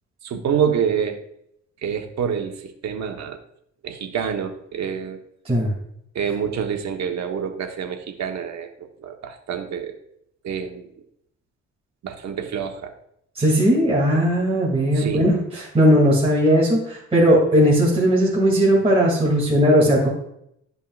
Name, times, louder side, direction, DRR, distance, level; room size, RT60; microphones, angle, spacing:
voice 1, 0.2-1.2 1.8-3.4 3.8-5.2 6.1-10.0 10.4-10.9 12.0-12.9 14.9-15.3, right 7 dB, 65° right, 5 dB, 1.2 m, -27 dB
voice 2, 13.3-20.1, equal, 20° right, -5 dB, 2.7 m, -18 dB
12.0 x 5.5 x 2.5 m, 0.73 s
cardioid pair, 90°, 30 cm